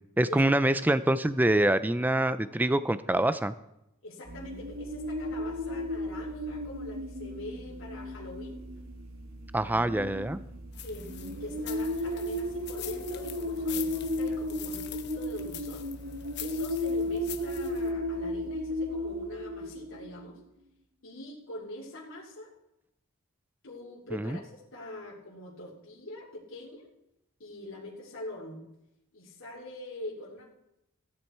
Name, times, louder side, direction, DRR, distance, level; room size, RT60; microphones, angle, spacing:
voice 1, 0.2-3.5 9.5-10.4 24.1-24.4, right 1 dB, 10° right, 13 dB, 0.4 m, -25 dB
voice 2, 4.0-8.6 10.8-15.8 16.4-20.4 21.0-22.5 23.6-26.9 27.4-28.6 29.1-30.5, left 1 dB, 70° left, -7 dB, 2.8 m, -43 dB
sound 1, 4.3-20.2, left 1 dB, 90° right, 1.4 m, -34 dB
sound 2, 10.7-17.9, left 11 dB, 50° left, 0.9 m, -44 dB
15.5 x 10.5 x 4.4 m, 0.87 s
head